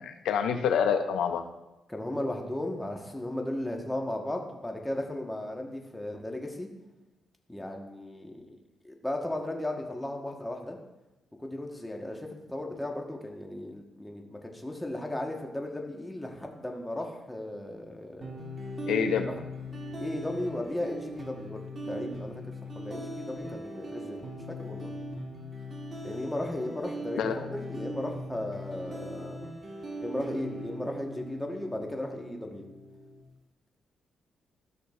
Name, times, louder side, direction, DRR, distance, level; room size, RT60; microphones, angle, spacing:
voice 1, 0.0-1.4 18.9-19.3 27.2-27.4, left 7 dB, 90° left, 8 dB, 0.5 m, -27 dB
voice 2, 1.9-6.7 7.5-8.6 8.8-10.8 11.4-18.4 19.1-19.3 20.0-22.4 22.7-24.2 24.6-24.9 26.0-29.4 30.0-32.6, left 1 dB, 10° left, 1 dB, 1.2 m, -35 dB
sound 1, 18.2-33.2, equal, 40° right, 1.4 m, -40 dB
13.5 x 6.2 x 2.4 m, 1.0 s
cardioid pair, 95°, 0 cm